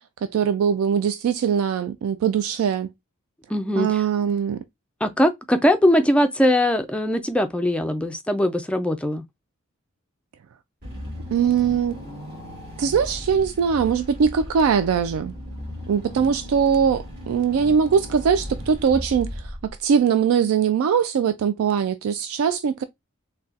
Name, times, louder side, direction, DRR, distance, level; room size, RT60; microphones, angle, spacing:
voice 1, 0.2-2.9 3.8-4.6 11.3-12.0 12.8-15.3 15.9-19.5 19.8-22.8, right 7 dB, 80° right, 0.3 m, -21 dB
voice 2, 3.5-4.0 5.0-9.2, left 1 dB, 5° left, 0.3 m, -21 dB
Car / Engine, 10.8-20.0, left 1 dB, 50° right, 2.0 m, -36 dB
3.9 x 2.2 x 2.4 m
head